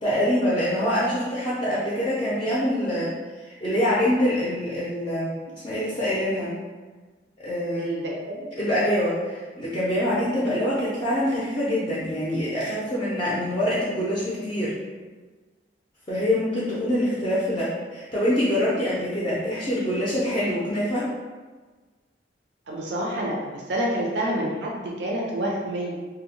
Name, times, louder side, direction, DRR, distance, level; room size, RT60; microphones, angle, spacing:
voice 1, 0.0-6.5 7.4-7.9 8.6-14.7 16.1-21.1, equal, 25° left, -8 dB, 0.4 m, -25 dB
voice 2, 7.7-8.5 10.0-10.2 16.7-16.8 17.2-17.3 22.7-26.0, right 1 dB, 75° right, -2 dB, 0.4 m, -28 dB
2.6 x 2.0 x 2.8 m, 1.4 s
head